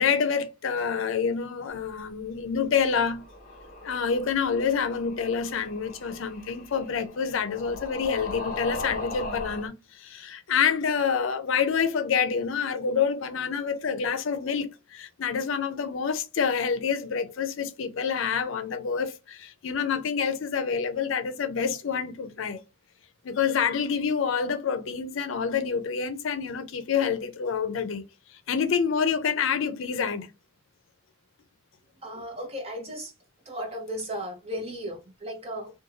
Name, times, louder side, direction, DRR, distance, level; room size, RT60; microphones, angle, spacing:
voice 1, 0.0-3.2 3.8-9.7 10.0-22.6 23.2-28.0 28.5-30.3, left 6 dB, 75° left, 0.5 m, -27 dB
sound 1, 3.0-9.7, left 2 dB, 40° left, 0.7 m, -39 dB
voice 2, 32.0-33.1 33.5-35.7, equal, 30° right, 0.7 m, -35 dB
2.5 x 2.2 x 3.0 m
head